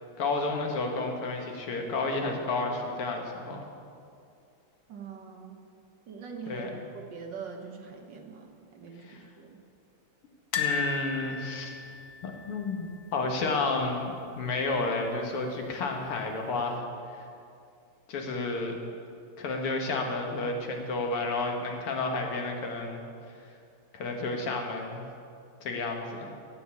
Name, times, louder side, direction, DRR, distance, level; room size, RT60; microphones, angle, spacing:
voice 1, 0.2-3.6 6.5-6.7 9.0-9.2 10.5-11.8 12.2-16.8 17.1-17.2 18.1-18.7 19.4-23.0 23.9-25.1 25.6-26.3, left 3 dB, 90° left, 2 dB, 2.3 m, -31 dB
voice 2, 4.9-5.6 6.1-9.6, right 5 dB, 60° right, 2 dB, 1.7 m, -43 dB
sound 1, 10.5-13.6 13.8-14.0 14.3-14.4 15.6-16.2 16.7-16.8, left 5 dB, 60° left, 1.1 m, -34 dB
16.0 x 5.4 x 8.3 m, 2.4 s
omnidirectional pair, 2.4 m